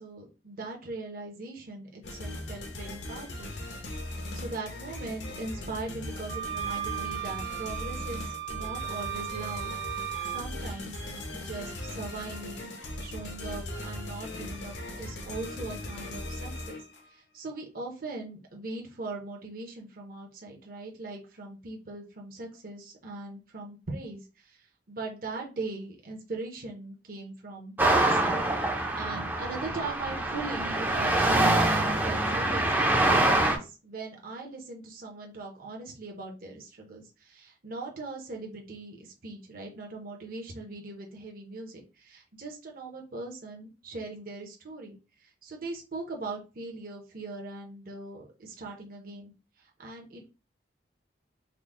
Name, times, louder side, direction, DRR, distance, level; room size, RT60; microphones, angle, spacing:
voice 1, 0.0-3.5 4.3-9.7 10.3-10.9 11.3-12.7 13.0-16.8 17.1-28.4 28.7-49.3 49.6-50.3, right 3 dB, 50° right, 0 dB, 0.7 m, -40 dB
sound 1, 2.0-17.1, left 1 dB, 70° left, 0.8 m, -39 dB
sound 2, 6.3-10.4, right 13 dB, 90° right, 0.9 m, -36 dB
sound 3, 27.8-33.6, right 2 dB, 10° right, 0.4 m, -25 dB
3.6 x 2.0 x 3.6 m, 0.31 s
head